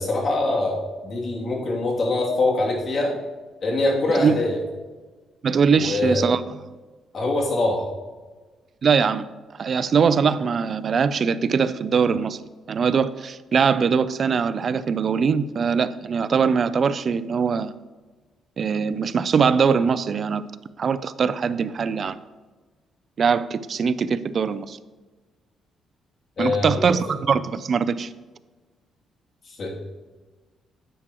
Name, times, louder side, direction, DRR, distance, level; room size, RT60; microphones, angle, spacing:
voice 1, 0.0-3.1 3.6-4.6 5.7-6.2 7.1-7.8 26.4-26.8 29.5-29.8, left 2 dB, 50° left, 2.7 m, -23 dB
voice 2, 5.4-6.7 8.8-9.3 9.6-12.4 12.7-17.7 18.6-20.4 20.8-22.2 23.2-24.8 26.4-28.1, right 6 dB, 50° right, 0.4 m, -22 dB
9.9 x 8.8 x 3.0 m
cardioid pair, 90°, 0 cm